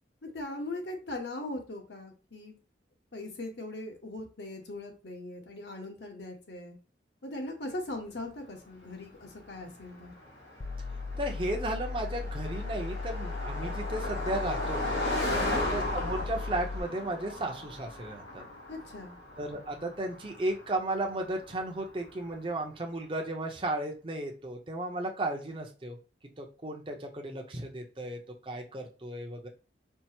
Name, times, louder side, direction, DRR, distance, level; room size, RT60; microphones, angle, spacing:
voice 1, 0.2-2.6 3.1-6.8 7.2-10.1 15.2-15.6 18.7-19.1, left 2 dB, 70° left, 2 dB, 1.1 m, -39 dB
Car passing by, 8.7-22.4, left 1 dB, 85° left, 1.6 m, -37 dB
sound 1, 10.6-16.8, left 3 dB, 35° left, 0.4 m, -37 dB
voice 2, 11.2-15.0 15.5-18.4 19.4-26.0 26.4-29.5, right 1 dB, 30° right, 1 dB, 0.6 m, -34 dB
4.4 x 2.0 x 4.3 m, 0.35 s
head